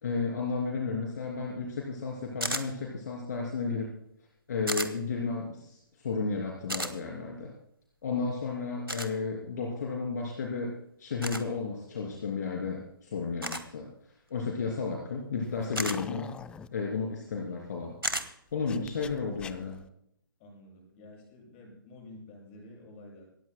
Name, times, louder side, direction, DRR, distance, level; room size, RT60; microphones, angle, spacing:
voice 1, 0.0-3.9 4.5-7.5 8.0-10.7 11.0-13.9 14.3-16.3 16.7-18.0 18.5-19.8, left 4 dB, 50° left, -1 dB, 3.2 m, -33 dB
sound 1, 2.4-2.7 4.7-4.9 6.7-6.9 8.9-9.1 11.2-11.4 13.4-13.7 15.7-16.0 18.0-18.3, right 1 dB, 90° right, 1.7 m, -32 dB
sound 2, 15.4-16.7 18.5-19.8, left 7 dB, 10° left, 0.4 m, -45 dB
voice 2, 20.4-23.3, left 2 dB, 30° left, -1 dB, 7.4 m, -50 dB
27.0 x 14.0 x 2.3 m, 0.74 s
figure-of-eight pair, 125°, 12 cm